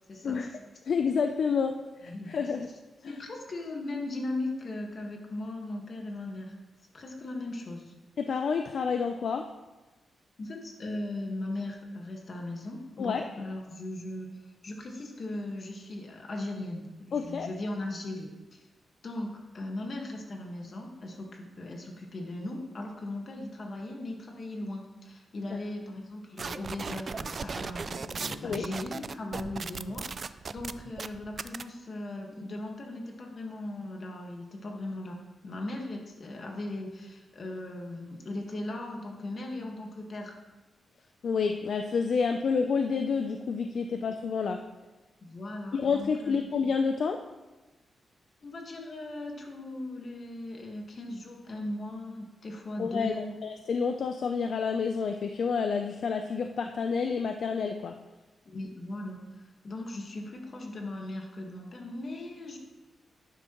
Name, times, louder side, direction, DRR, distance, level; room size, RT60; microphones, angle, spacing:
voice 1, 0.1-0.5 2.0-2.4 3.0-6.5 6.9-7.9 10.4-14.3 14.6-18.6 19.0-40.3 43.9-44.0 45.2-46.5 48.4-53.3 58.4-62.6, left 2 dB, 40° left, 1 dB, 1.6 m, -38 dB
voice 2, 0.8-2.7 3.0-3.1 8.2-9.5 13.0-13.3 17.1-17.5 28.4-28.6 41.2-44.6 45.7-47.2 52.8-57.9, left 5 dB, 55° left, 6 dB, 0.5 m, -29 dB
sound 1, 26.4-31.6, right 5 dB, 35° right, 0.3 m, -37 dB
11.5 x 10.0 x 3.1 m, 1.1 s
wide cardioid pair, 155°, 0 cm